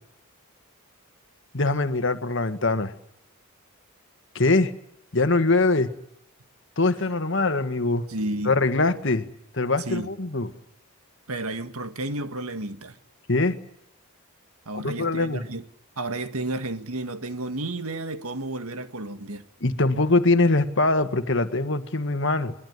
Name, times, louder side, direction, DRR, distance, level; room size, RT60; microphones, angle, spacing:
voice 1, 1.5-2.9 4.3-4.7 5.1-5.9 6.8-8.0 8.4-9.2 9.5-10.5 13.3-13.5 14.7-15.4 19.6-22.5, left 2 dB, 55° left, 1.7 m, -22 dB
voice 2, 8.1-8.6 9.9-10.1 11.3-13.0 14.7-15.7 16.0-19.4, right 2 dB, 80° right, 1.8 m, -32 dB
22.0 x 21.5 x 9.6 m
head